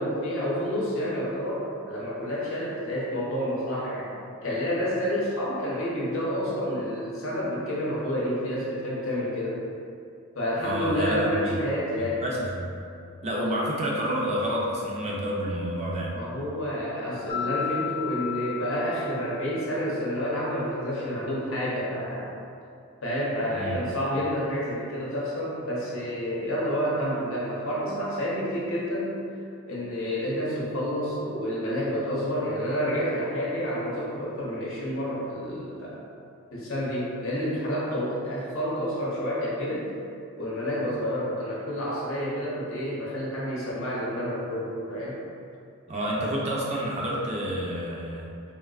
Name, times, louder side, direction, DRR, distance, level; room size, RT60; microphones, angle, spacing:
voice 1, 0.0-4.1 4.4-9.6 10.3-12.3 13.4-13.5 16.1-22.3 23.0-29.2 29.7-36.1 36.5-39.9 40.4-45.2, equal, 65° left, -6 dB, 0.7 m, -29 dB
voice 2, 10.6-11.6 12.0-12.7 13.2-16.1 23.5-23.8 45.9-48.3, equal, 30° right, -4 dB, 0.4 m, -29 dB
Mallet percussion, 17.3-19.7, left 8 dB, 35° left, 0.5 m, -33 dB
3.3 x 2.4 x 2.3 m, 2.5 s
head